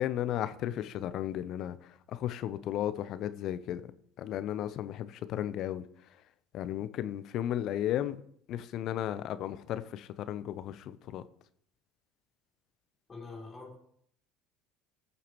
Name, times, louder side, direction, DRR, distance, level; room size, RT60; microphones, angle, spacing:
voice 1, 0.0-1.8 2.1-3.8 4.2-5.8 6.5-8.2 8.5-11.2, left 11 dB, 55° left, 0.7 m, -34 dB
voice 2, 13.1-13.8, left 3 dB, 25° left, 3.4 m, -44 dB
20.5 x 7.0 x 3.1 m
hypercardioid pair, 70°, 0 cm